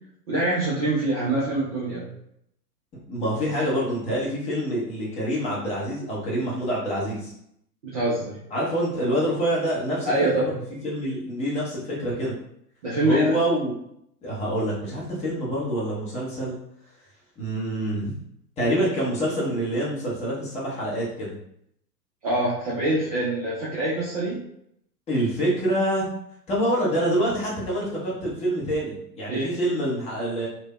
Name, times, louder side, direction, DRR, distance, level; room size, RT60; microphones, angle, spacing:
voice 1, 0.3-2.1 7.8-8.4 10.1-10.6 12.8-13.3 22.2-24.4 29.3-29.5, right 2 dB, 25° right, -8 dB, 0.4 m, -25 dB
voice 2, 3.1-7.3 8.5-10.1 10.8-12.3 13.0-13.8 14.2-16.6 17.4-18.2 18.6-21.3 25.1-26.1 26.5-30.5, equal, 15° left, -6 dB, 0.7 m, -26 dB
3.2 x 2.1 x 2.2 m, 0.74 s
figure-of-eight pair, 105°, 49 cm